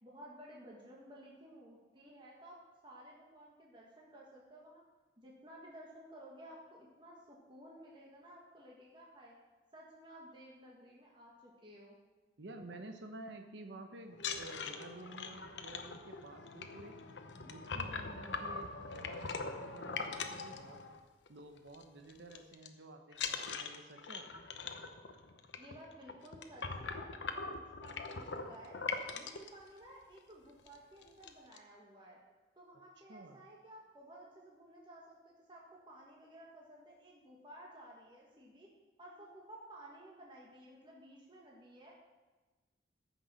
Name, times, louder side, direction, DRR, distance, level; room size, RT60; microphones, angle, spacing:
voice 1, 0.0-4.8 5.2-9.3 9.7-12.0 25.6-28.8 29.1-32.2 32.6-38.7 39.0-41.9, right 1 dB, 25° right, -3 dB, 1.6 m, -55 dB
voice 2, 12.4-17.0 17.4-20.8 21.3-24.3 33.1-33.4, right 2 dB, 75° right, 5 dB, 0.9 m, -51 dB
sound 1, 14.1-21.3 21.6-21.8 22.1-22.7 23.1-29.5 30.2-30.3 30.6-30.8 31.0-31.6, left 4 dB, 80° left, 0.9 m, -42 dB
14.5 x 6.0 x 5.6 m, 1.2 s
head